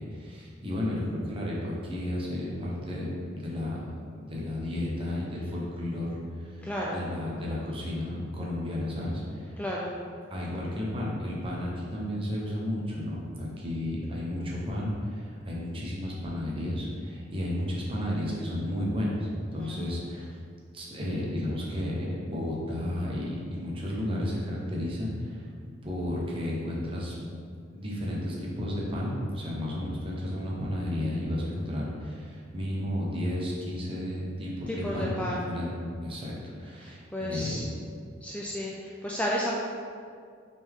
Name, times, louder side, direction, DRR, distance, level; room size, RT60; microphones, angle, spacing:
voice 1, 0.0-3.8 4.1-6.5 6.9-9.5 10.3-20.3 20.7-25.4 25.8-27.1 27.7-35.7 36.0-36.3 36.6-37.6, left 1 dB, 25° right, -4 dB, 1.1 m, -32 dB
voice 2, 6.6-7.0 9.6-9.9 19.6-20.0 34.7-35.4 36.8-37.6 38.2-39.5, equal, 5° left, -4 dB, 0.4 m, -32 dB
5.9 x 4.4 x 3.6 m, 2.2 s
head